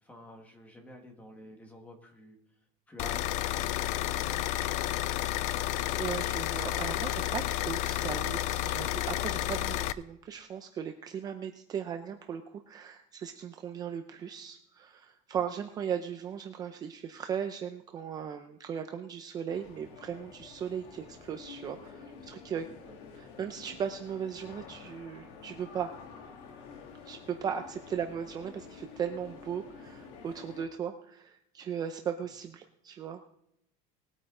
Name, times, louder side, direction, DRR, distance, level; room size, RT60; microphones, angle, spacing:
voice 1, 0.0-2.4 2.9-4.3 15.3-15.4 22.8-22.9, equal, 10° left, 3 dB, 1.7 m, -51 dB
sound 1, 3.0-9.9, left 14 dB, 45° left, 0.4 m, -31 dB
voice 2, 6.0-22.7 23.1-25.9 27.0-33.2, right 8 dB, 25° right, 6 dB, 0.6 m, -37 dB
sound 2, 19.5-30.7, left 5 dB, 70° left, 2.0 m, -49 dB
19.5 x 8.9 x 3.8 m, 0.76 s
cardioid pair, 180°, 16 cm